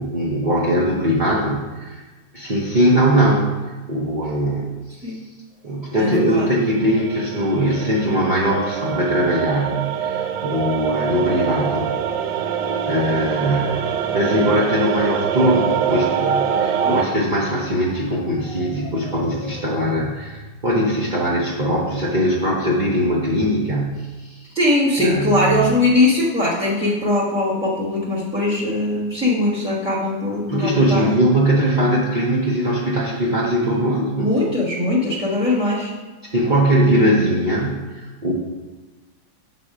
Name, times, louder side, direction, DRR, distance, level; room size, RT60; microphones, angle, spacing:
voice 1, 0.0-2.0 2.3-3.6 3.9-4.7 5.6-11.9 12.9-24.4 25.0-25.8 30.5-34.3 36.3-38.3, equal, 45° right, -5 dB, 0.6 m, -20 dB
voice 2, 6.0-6.5 16.8-16.9 24.5-31.2 34.2-35.9, left 2 dB, 5° right, -6 dB, 0.8 m, -20 dB
sound 1, 6.7-17.0, right 8 dB, 75° right, 1.2 m, -24 dB
sound 2, 10.2-21.5, equal, 25° right, 1.8 m, -40 dB
7.4 x 4.1 x 4.8 m, 1.3 s
omnidirectional pair, 2.1 m